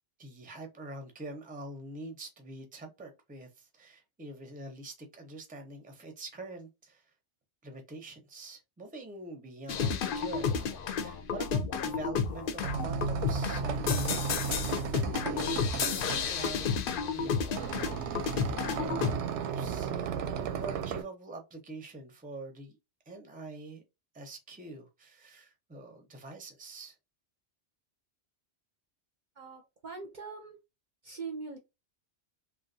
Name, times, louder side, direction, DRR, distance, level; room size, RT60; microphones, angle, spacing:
voice 1, 0.2-7.0 7.6-14.6 14.9-16.7 17.1-20.2 20.6-22.7 23.1-23.8 24.1-26.9, right 2 dB, 10° right, 0.6 m, -45 dB
sound 1, 9.7-19.2, left 6 dB, 60° left, 0.6 m, -32 dB
sound 2, 12.3-21.0, right 6 dB, 90° right, 0.9 m, -35 dB
voice 2, 29.4-30.6 31.0-31.6, right 4 dB, 50° right, 0.7 m, -42 dB
3.1 x 2.4 x 2.6 m
omnidirectional pair, 1.1 m